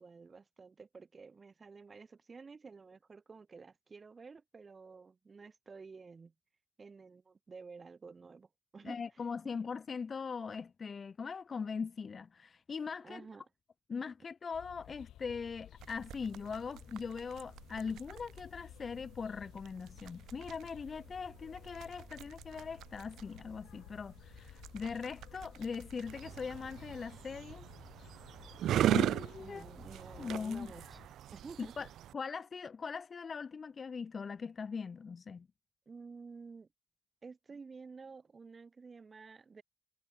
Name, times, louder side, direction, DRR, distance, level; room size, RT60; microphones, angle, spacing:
voice 1, 0.0-6.3 6.8-9.0 9.4-9.5 13.0-13.4 29.4-31.0 31.3-31.7 35.9-36.7 37.2-39.6, right 4 dB, 25° right, 2.3 m, -51 dB
voice 2, 8.8-13.2 13.9-27.7 28.9-29.7 30.2-30.7 31.6-31.9 32.1-35.5, left 5 dB, 30° left, 0.5 m, -41 dB
sound 1, 14.5-31.1, left 12 dB, 75° left, 3.6 m, -55 dB
sound 2, 15.8-27.1, right 13 dB, 85° right, 3.8 m, -56 dB
sound 3, 26.1-32.1, right 11 dB, 70° right, 1.0 m, -35 dB
cardioid pair, 170°, 0 cm